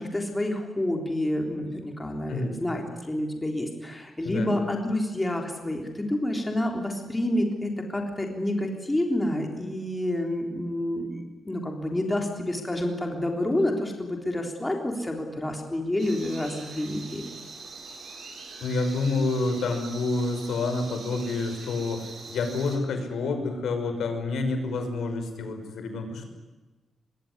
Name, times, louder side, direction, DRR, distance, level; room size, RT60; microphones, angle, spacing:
voice 1, 0.0-17.3, left 1 dB, 10° left, 2 dB, 3.6 m, -29 dB
voice 2, 2.3-2.6 4.2-4.5 18.6-26.4, left 3 dB, 80° left, 6 dB, 5.7 m, -28 dB
sound 1, 16.0-22.8, right 4 dB, 55° right, 7.7 m, -43 dB
25.5 x 22.5 x 9.7 m, 1.2 s
wide cardioid pair, 170°, 0 cm